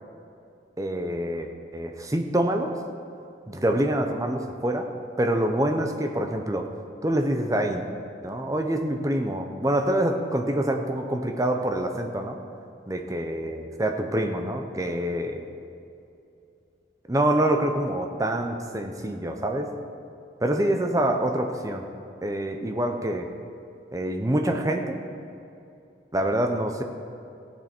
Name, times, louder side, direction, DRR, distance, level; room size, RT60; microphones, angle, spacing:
voice 1, 0.8-2.7 3.5-4.9 5.2-6.7 7.0-7.9 8.2-12.4 12.9-15.5 17.1-19.7 20.4-21.9 22.2-23.3 23.9-25.0 26.1-26.8, right 1 dB, 20° right, 5 dB, 0.7 m, -26 dB
15.5 x 8.9 x 4.5 m, 2.6 s
head